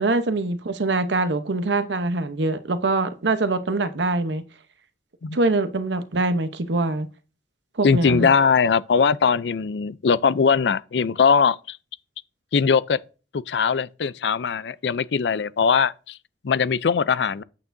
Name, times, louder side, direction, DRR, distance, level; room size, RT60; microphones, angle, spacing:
voice 1, 0.0-4.4 5.3-7.1 7.8-8.3, right 2 dB, 85° right, 0.9 m, -23 dB
voice 2, 7.8-11.8 12.5-13.0 13.3-16.2 16.4-17.4, left 5 dB, 80° left, 0.5 m, -20 dB
9.0 x 8.4 x 2.7 m
head